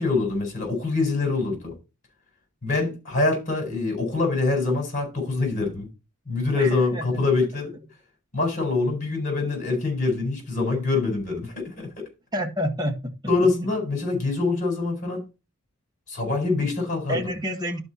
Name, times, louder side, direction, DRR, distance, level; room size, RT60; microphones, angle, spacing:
voice 1, 0.0-1.7 2.6-5.9 6.3-7.7 8.3-12.0 13.3-15.2 16.1-17.3, left 3 dB, 40° left, 4.4 m, -25 dB
voice 2, 6.6-7.5 12.3-13.1 17.1-17.8, equal, 20° right, 1.6 m, -29 dB
11.5 x 4.4 x 4.1 m
head